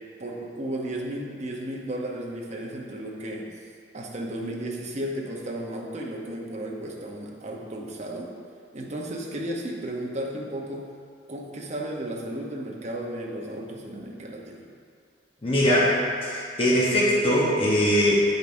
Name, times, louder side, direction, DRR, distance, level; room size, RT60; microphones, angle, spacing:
voice 1, 0.2-3.5 3.9-8.3 8.7-10.9 11.3-14.6, right 1 dB, 35° right, -1 dB, 0.8 m, -34 dB
voice 2, 15.4-16.0 16.2-18.2, equal, 30° left, -6 dB, 0.9 m, -21 dB
9.3 x 5.2 x 2.6 m, 2.2 s
head